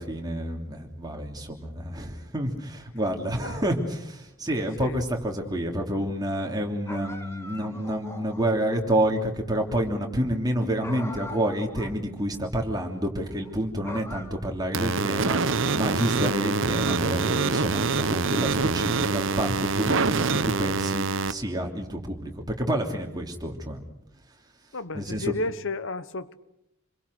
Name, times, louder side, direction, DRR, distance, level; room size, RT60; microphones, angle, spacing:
voice 1, 0.0-23.8 24.9-25.3, right 1 dB, 20° right, 3.0 m, -29 dB
voice 2, 4.8-5.1 24.7-26.3, left 2 dB, 65° left, 1.2 m, -32 dB
sound 1, 6.9-8.6 10.8-12.0 12.3-12.4 13.3-13.5 13.8-14.9 15.3-16.5, left 2 dB, 15° left, 1.9 m, -42 dB
sound 2, 14.7-21.3, right 4 dB, 65° right, 1.0 m, -25 dB
27.5 x 22.5 x 6.5 m
head